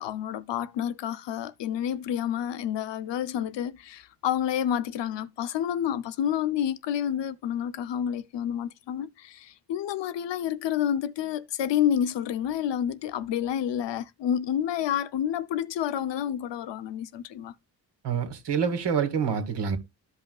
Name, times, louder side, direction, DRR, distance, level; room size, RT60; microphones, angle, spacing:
voice 1, 0.0-17.5, left 10 dB, 80° left, 0.8 m, -29 dB
voice 2, 18.0-19.8, right 7 dB, 75° right, 2.2 m, -27 dB
13.5 x 5.6 x 2.3 m
cardioid pair, 75°, 42 cm